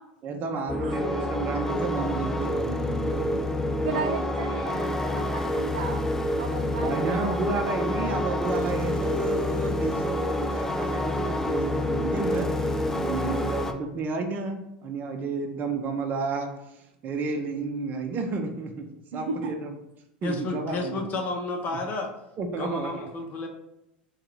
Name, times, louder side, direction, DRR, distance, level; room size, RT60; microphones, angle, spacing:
voice 1, 0.2-3.4 6.8-12.5 13.0-18.9 19.1-19.8 20.2-21.0 22.4-22.9, right 3 dB, 40° right, 4 dB, 0.7 m, -31 dB
sound 1, 0.7-13.7, left 1 dB, 10° left, 0.5 m, -28 dB
voice 2, 3.8-6.0 6.4-7.4 12.9-13.5 19.1-19.5, right 4 dB, 75° right, 3 dB, 0.4 m, -34 dB
voice 3, 20.2-22.1 22.6-23.5, left 2 dB, 40° left, 2 dB, 0.8 m, -31 dB
3.7 x 2.4 x 4.5 m, 0.84 s
hypercardioid pair, 85°, 5 cm